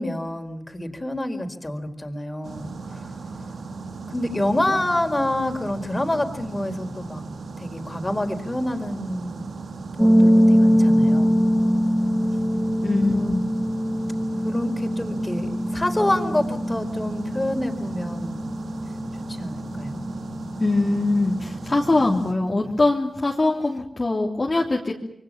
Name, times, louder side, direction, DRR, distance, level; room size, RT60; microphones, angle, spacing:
voice 1, 0.0-3.1 4.1-7.2 7.6-9.5 10.0-11.4 13.1-13.3 14.4-18.4 19.3-20.0, left 1 dB, 20° left, 7 dB, 4.4 m, -27 dB
sound 1, 2.4-22.3, right 3 dB, 80° right, 2.8 m, -37 dB
sound 2, 10.0-22.8, equal, 5° right, 3.8 m, -23 dB
voice 2, 12.8-13.4 20.6-24.9, left 2 dB, 35° left, -2 dB, 3.1 m, -22 dB
26.5 x 23.5 x 7.4 m, 0.76 s
cardioid pair, 60°, 0 cm